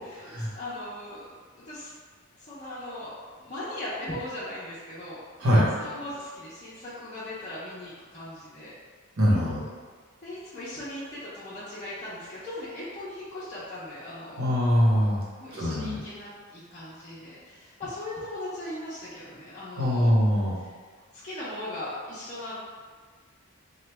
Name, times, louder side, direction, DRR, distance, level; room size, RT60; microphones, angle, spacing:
voice 1, 0.0-1.2 1.5-1.9 2.4-3.1 3.4-5.2 5.8-8.7 10.2-14.5 15.4-20.1 20.6-20.8 21.1-22.5, left 1 dB, 35° left, -11 dB, 0.6 m, -39 dB
voice 2, 5.4-5.7 9.2-9.6 14.4-15.2 15.5-16.0 19.8-20.6, equal, 80° right, -6 dB, 1.0 m, -22 dB
3.2 x 2.2 x 3.3 m, 1.5 s
head